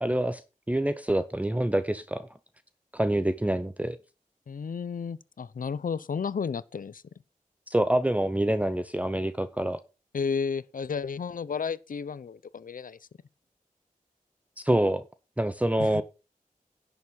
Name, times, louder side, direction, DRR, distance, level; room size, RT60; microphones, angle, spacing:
voice 1, 0.0-0.4 0.7-2.3 2.9-4.0 7.7-9.8 14.6-15.0 15.4-16.0, right 1 dB, 10° right, 0.7 m, -26 dB
voice 2, 4.5-7.0 10.1-13.0 15.8-16.0, left 6 dB, 75° left, 0.6 m, -32 dB
11.0 x 7.0 x 5.4 m
wide cardioid pair, 85°, 14 cm